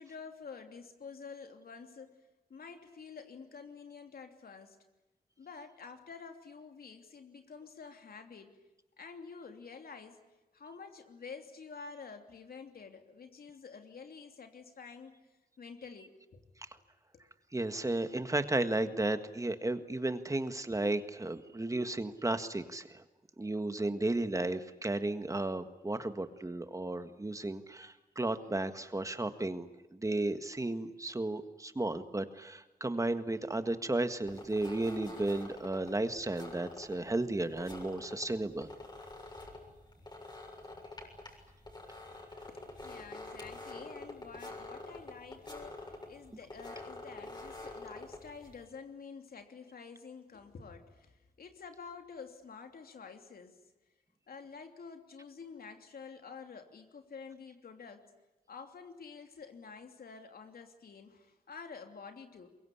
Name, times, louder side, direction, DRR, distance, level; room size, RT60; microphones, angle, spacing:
voice 1, 0.0-2.2 2.5-4.8 5.4-8.6 9.0-10.2 10.5-15.3 15.6-16.4 17.1-17.3 42.5-53.6 54.3-58.1 58.5-62.5, left 5 dB, 90° left, 5 dB, 3.0 m, -49 dB
voice 2, 17.5-23.0 23.4-29.7 29.9-38.7, right 2 dB, 20° right, 9 dB, 1.7 m, -34 dB
sound 1, 34.3-48.7, left 2 dB, 30° left, 6.8 m, -47 dB
23.5 x 22.5 x 10.0 m, 1.1 s
wide cardioid pair, 100°, 15 cm